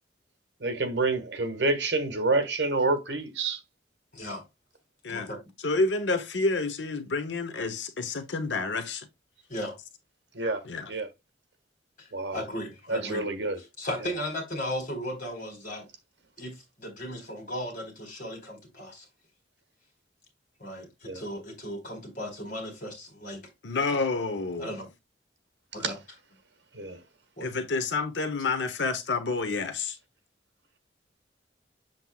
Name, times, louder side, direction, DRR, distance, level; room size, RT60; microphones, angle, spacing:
voice 1, 0.6-3.6 10.4-10.6 10.9-11.1 12.1-12.4 12.9-13.6 21.1-21.2 25.8-25.9 26.7-27.0, right 3 dB, 70° right, 1.7 m, -28 dB
voice 2, 4.1-4.4 5.1-5.4 9.5-9.8 12.0-13.2 13.8-15.9 16.4-19.0 20.6-23.4 24.6-24.9 25.7-26.0 27.4-27.5, equal, 50° left, 4.0 m, -36 dB
voice 3, 5.6-9.1 10.6-10.9 23.6-24.7 27.4-30.0, left 3 dB, 75° left, 1.0 m, -29 dB
7.6 x 7.2 x 2.3 m
head